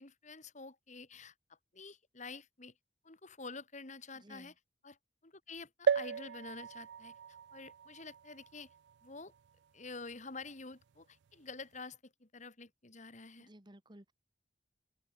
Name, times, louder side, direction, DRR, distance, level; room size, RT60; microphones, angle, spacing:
voice 1, 0.0-2.7 3.0-4.5 4.8-5.0 5.2-8.7 9.0-9.3 9.7-13.5, left 4 dB, 45° left, 2.2 m, -49 dB
voice 2, 4.1-4.5 13.4-14.1, right 1 dB, 25° right, 2.3 m, -56 dB
sound 1, 5.9-9.5 10.1-10.2 10.4-10.5, right 7 dB, 85° right, 0.4 m, -36 dB
open air
head